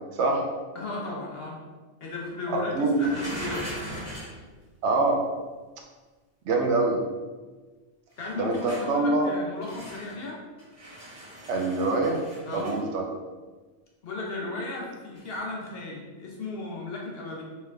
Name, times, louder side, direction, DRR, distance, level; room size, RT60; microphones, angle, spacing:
voice 1, 0.1-0.4 2.5-3.1 4.8-5.2 6.5-7.0 8.4-9.3 11.5-12.2 12.5-13.0, right 2 dB, 75° right, 1 dB, 0.9 m, -24 dB
voice 2, 0.7-1.6 2.0-3.7 8.2-10.4 12.4-12.7 14.0-17.4, left 3 dB, 60° left, -2 dB, 1.0 m, -35 dB
sound 1, 2.9-4.4 8.1-8.9 9.6-10.2 10.6-12.8 15.1-15.4, right 1 dB, 15° right, 1.2 m, -40 dB
3.6 x 3.3 x 3.3 m, 1.3 s
omnidirectional pair, 1.2 m